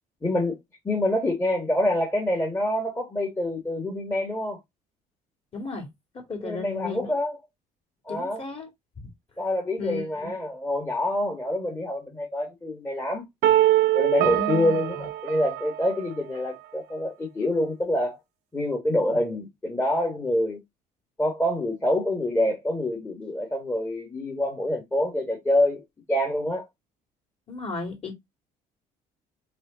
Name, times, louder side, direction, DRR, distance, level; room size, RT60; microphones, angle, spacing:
voice 1, 0.2-0.6 0.8-4.6 6.4-7.4 8.0-8.4 9.4-13.2 13.9-18.2 18.5-20.6 21.2-25.8 26.1-26.7, left 1 dB, 15° left, 1.4 m, -26 dB
voice 2, 5.5-5.9 6.1-7.1 8.1-8.7 9.8-10.3 14.2-15.1 27.5-28.1, left 3 dB, 35° left, 2.6 m, -34 dB
sound 1, 13.4-16.4, right 14 dB, 85° right, 0.5 m, -23 dB
4.2 x 3.2 x 3.9 m
cardioid pair, 110°, 17 cm